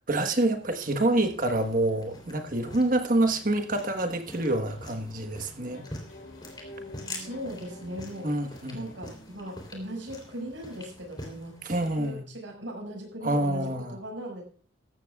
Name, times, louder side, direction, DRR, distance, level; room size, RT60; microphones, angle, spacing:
voice 1, 0.1-5.8 8.2-8.8 11.6-12.2 13.2-14.0, right 1 dB, 45° right, 1.3 m, -27 dB
sound 1, 0.6-12.1, left 1 dB, 25° left, 3.4 m, -45 dB
sound 2, 5.7-10.4, left 1 dB, 70° left, 2.9 m, -48 dB
voice 2, 7.1-8.4 8.7-14.4, equal, 75° right, 5.6 m, -39 dB
16.0 x 13.5 x 2.4 m
head